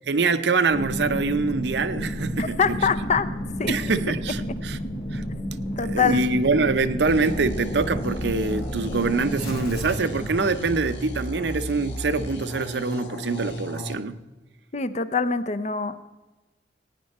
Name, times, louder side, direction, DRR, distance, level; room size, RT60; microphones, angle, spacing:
voice 1, 0.1-2.8 3.7-4.8 5.1-5.2 5.8-14.2, right 3 dB, 70° right, 11 dB, 0.7 m, -25 dB
sound 1, 0.7-11.2 11.6-11.7, equal, 60° left, 2.3 m, -31 dB
voice 2, 2.4-3.3 3.6-3.7 5.8-6.2 14.7-16.0, left 5 dB, 40° left, 12 dB, 0.6 m, -24 dB
sound 2, 7.1-13.9, equal, 90° left, 1.8 m, -34 dB
16.5 x 9.4 x 4.2 m, 1.2 s
head